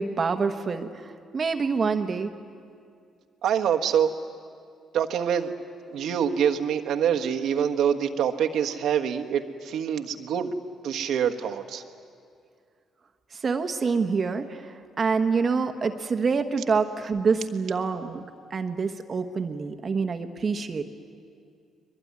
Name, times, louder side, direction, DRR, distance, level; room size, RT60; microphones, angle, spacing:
voice 1, 0.0-2.3 13.3-18.2 18.5-20.9, right 5 dB, 40° right, 7 dB, 1.2 m, -26 dB
voice 2, 3.4-4.1 4.9-5.5 5.9-10.5 10.8-11.8, right 8 dB, 75° right, 5 dB, 1.4 m, -25 dB
22.5 x 22.0 x 9.6 m, 2.3 s
cardioid pair, 100°, 0 cm